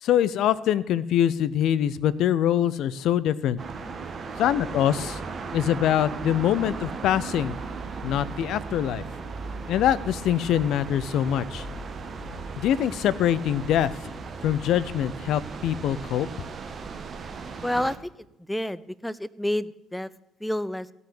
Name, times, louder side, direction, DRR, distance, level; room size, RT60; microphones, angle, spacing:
voice 1, 0.0-3.6 4.4-5.2 5.5-7.6 8.0-9.0 9.7-11.7 12.6-13.9 14.4-16.3, left 10 dB, 55° left, 17 dB, 0.5 m, -24 dB
sound 1, 3.6-18.0, right 4 dB, 40° right, 1.4 m, -36 dB
voice 2, 17.6-18.0 18.5-20.1 20.4-20.9, left 1 dB, 5° left, 17 dB, 0.5 m, -29 dB
15.5 x 6.1 x 6.9 m, 0.87 s
figure-of-eight pair, 50°, 0 cm